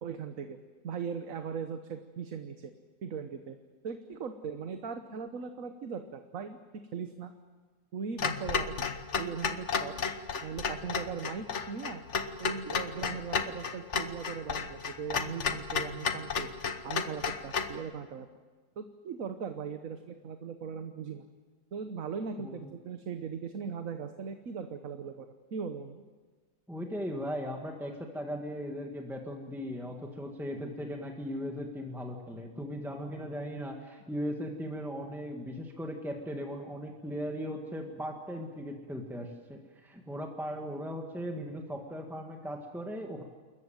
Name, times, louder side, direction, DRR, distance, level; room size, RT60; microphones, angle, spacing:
voice 1, 0.0-0.6 0.8-2.7 3.0-3.6 3.8-6.6 6.9-7.3 7.9-8.8 9.2-10.0 10.4-12.0 12.4-16.5 16.8-18.3 18.8-21.2 21.7-26.0, right 6 dB, 55° right, 7 dB, 1.4 m, -39 dB
Clock, 8.2-17.8, left 5 dB, 50° left, 1.3 m, -33 dB
voice 2, 26.7-43.2, equal, ahead, 2 dB, 1.8 m, -38 dB
28.5 x 14.5 x 9.1 m, 1.4 s
omnidirectional pair, 1.8 m